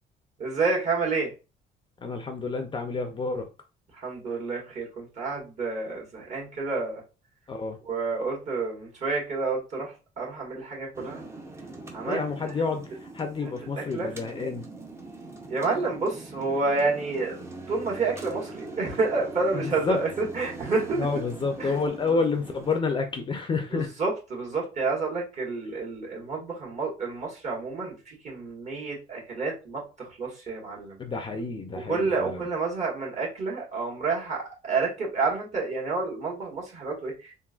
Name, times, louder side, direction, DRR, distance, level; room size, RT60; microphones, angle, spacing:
voice 1, 0.4-1.3 3.9-7.0 7.8-11.2 11.9-12.2 13.9-14.1 15.5-21.0 21.6-21.7 23.7-28.0 28.2-31.0 31.7-37.3, right 3 dB, 40° right, 1.7 m, -29 dB
voice 2, 2.0-3.5 7.5-7.8 12.1-14.7 19.5-20.1 20.9-24.0 31.0-32.4, left 4 dB, 30° left, 0.5 m, -29 dB
sound 1, 10.9-22.8, right 2 dB, 15° right, 0.6 m, -42 dB
3.6 x 2.5 x 2.4 m
cardioid pair, 120°, 18 cm